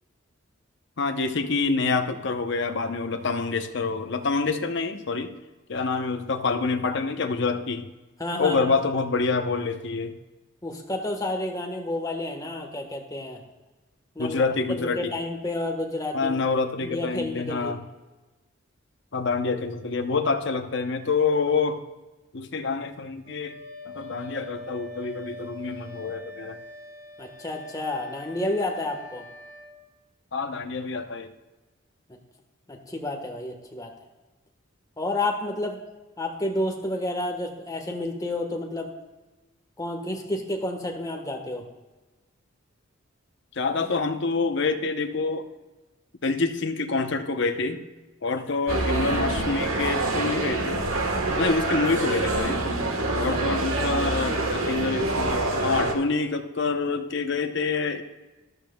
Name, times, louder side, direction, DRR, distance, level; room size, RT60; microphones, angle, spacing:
voice 1, 1.0-5.3 5.7-7.9 8.4-10.1 14.2-15.1 16.1-17.8 19.1-21.8 22.3-23.6 23.8-26.6 30.3-31.3 43.5-45.5 46.2-47.8 48.2-50.9 51.4-52.6 53.1-58.0, left 4 dB, 60° left, 7 dB, 0.8 m, -27 dB
voice 2, 8.2-8.7 10.6-13.4 14.1-14.4 14.8-16.4 16.8-17.7 27.2-29.2 32.7-33.9 35.0-35.8 36.2-38.9 39.8-41.6 53.0-53.4, left 1 dB, 20° left, 2 dB, 1.3 m, -30 dB
Wind instrument woodwind instrument, 23.2-29.8, left 1 dB, 45° left, 3.2 m, -43 dB
sound 1, 48.7-55.9, right 2 dB, 90° right, 1.3 m, -26 dB
13.5 x 12.0 x 2.3 m, 1.1 s
head